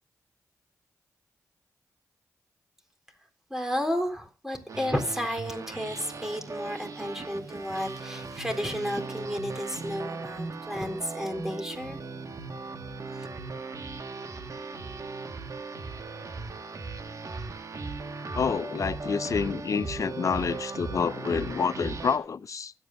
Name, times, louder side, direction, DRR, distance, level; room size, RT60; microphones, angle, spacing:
voice 1, 3.5-12.0 13.1-13.3, equal, 5° right, 3.9 m, -32 dB
sound 1, 4.7-22.2, right 3 dB, 60° right, 1.8 m, -38 dB
voice 2, 18.3-22.7, left 6 dB, 60° left, 0.6 m, -28 dB
24.0 x 8.7 x 2.7 m
cardioid pair, 60°, 6 cm